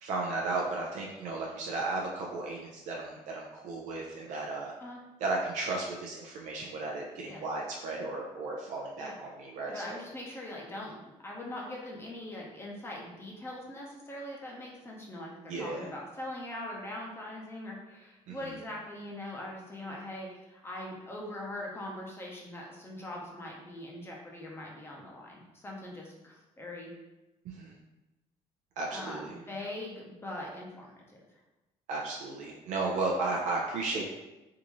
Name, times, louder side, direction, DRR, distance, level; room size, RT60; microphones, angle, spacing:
voice 1, 0.0-4.7 5.2-10.0 15.5-15.8 18.3-18.6 27.4-27.7 28.8-29.3 31.9-34.0, right 3 dB, 80° right, -2 dB, 0.5 m, -34 dB
voice 2, 9.7-27.0 28.9-31.2, left 1 dB, 20° left, -2 dB, 0.7 m, -42 dB
3.5 x 2.6 x 3.0 m, 1.0 s
cardioid pair, 125°, 12 cm